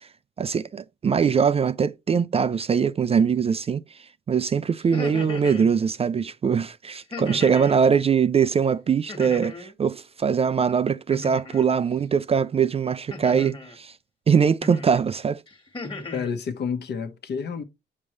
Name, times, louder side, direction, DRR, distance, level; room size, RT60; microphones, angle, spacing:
voice 1, 0.4-3.8 4.3-13.9 14.3-15.4, right 6 dB, 30° right, 0.4 m, -22 dB
sound 1, 4.8-5.7 7.1-7.8 9.1-9.8 11.1-11.7 13.1-13.8 14.6-15.0 15.5-16.3, left 2 dB, 25° left, 1.6 m, -36 dB
voice 2, 16.1-17.6, left 6 dB, 55° left, 1.1 m, -29 dB
7.4 x 5.4 x 3.1 m
cardioid pair, 90°, 20 cm